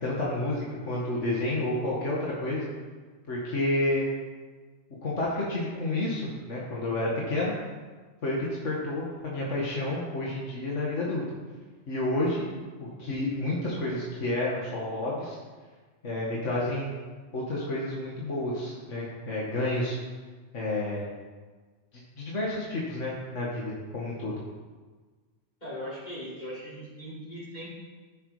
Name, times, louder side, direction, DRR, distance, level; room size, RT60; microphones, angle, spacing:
voice 1, 0.0-2.7 3.3-4.0 5.0-7.5 8.2-11.2 11.9-15.4 16.0-17.0 17.3-20.0 20.5-21.1 21.9-24.4, left 1 dB, 80° left, -5 dB, 2.3 m, -30 dB
voice 2, 25.6-27.7, equal, 35° left, -10 dB, 5.4 m, -39 dB
15.0 x 9.4 x 5.0 m, 1.4 s
omnidirectional pair, 1.2 m